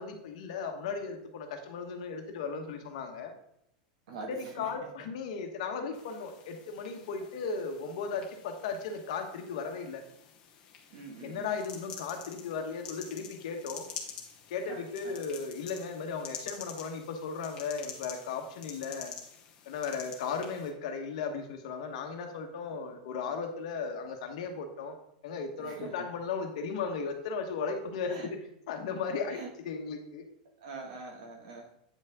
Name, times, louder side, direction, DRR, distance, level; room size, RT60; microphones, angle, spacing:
voice 1, 0.0-3.3 4.3-10.0 11.2-13.9 14.5-19.1 19.6-24.9 25.2-28.2 28.7-29.4 29.6-30.2, left 5 dB, 60° left, 4 dB, 1.3 m, -36 dB
voice 2, 4.1-4.7 10.9-11.5 14.7-15.2 25.6-26.1 28.1-28.3 29.3-29.5 30.6-31.7, right 4 dB, 60° right, 1 dB, 1.9 m, -44 dB
sound 1, 5.9-20.7, left 7 dB, 25° left, 1.1 m, -48 dB
8.9 x 5.3 x 3.6 m, 0.76 s
supercardioid pair, 175°, 4 cm